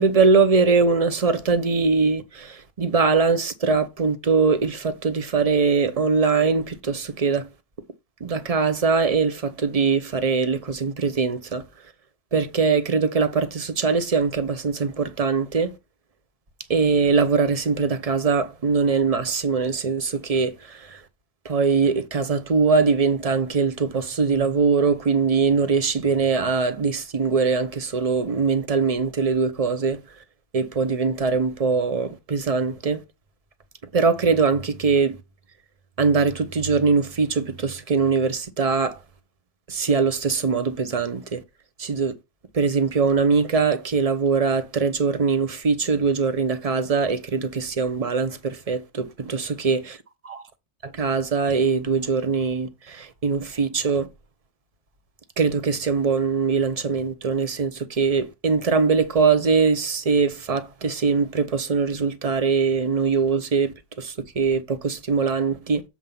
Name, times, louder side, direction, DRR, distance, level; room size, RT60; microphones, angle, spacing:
voice 1, 0.0-7.5 8.2-11.6 12.3-15.7 16.7-21.0 21.4-30.0 30.5-33.0 33.9-35.2 36.0-39.0 39.7-41.4 41.8-42.1 42.5-49.8 50.2-50.4 50.8-54.1 55.4-65.8, right 5 dB, 35° right, 0.9 m, -22 dB
7.5 x 4.0 x 5.6 m
omnidirectional pair, 1.3 m